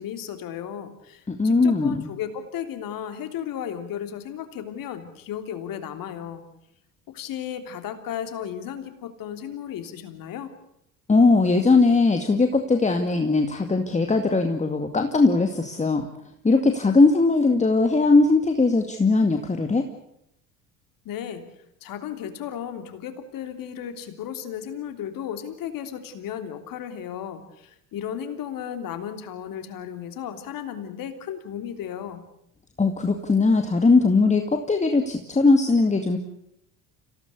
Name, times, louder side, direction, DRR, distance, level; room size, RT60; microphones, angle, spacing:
voice 1, 0.0-6.4 7.1-10.5 21.0-21.4 21.8-32.2, left 9 dB, 55° left, 8 dB, 3.3 m, -34 dB
voice 2, 1.3-2.1 11.1-16.1 16.4-19.8 32.8-36.2, left 3 dB, 15° left, 6 dB, 2.2 m, -20 dB
26.5 x 17.0 x 8.4 m, 0.78 s
hypercardioid pair, 65°, 40 cm